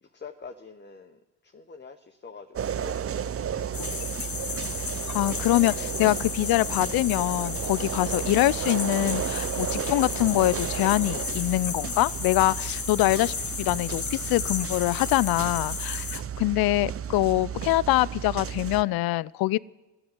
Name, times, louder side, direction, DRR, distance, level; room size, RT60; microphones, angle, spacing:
voice 1, 0.0-4.0 16.1-16.2, left 5 dB, 25° left, 6 dB, 1.0 m, -46 dB
sound 1, 2.6-18.8, right 8 dB, 30° right, 0.6 m, -33 dB
sound 2, 3.7-16.2, left 6 dB, 40° left, 1.4 m, -34 dB
voice 2, 5.1-19.6, left 17 dB, 55° left, 22 dB, 0.5 m, -24 dB
13.0 x 7.8 x 9.6 m, 1.1 s
hypercardioid pair, 45°, 45 cm